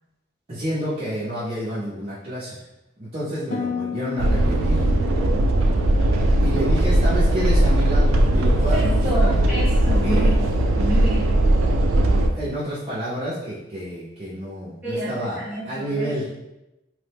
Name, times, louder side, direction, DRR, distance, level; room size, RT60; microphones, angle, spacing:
voice 1, 0.5-2.6 3.0-4.8 6.4-9.4 10.0-10.4 12.2-16.3, equal, 30° right, -10 dB, 0.6 m, -29 dB
Harp, 3.5-7.6 7.9-8.5 9.0-9.3, left 6 dB, 35° left, 0.3 m, -35 dB
sound 1, 4.2-12.3, right 1 dB, 90° right, 0.4 m, -19 dB
voice 2, 8.7-11.4 14.8-16.1, right 1 dB, 10° right, -7 dB, 1.0 m, -30 dB
3.1 x 2.1 x 3.3 m, 0.93 s
head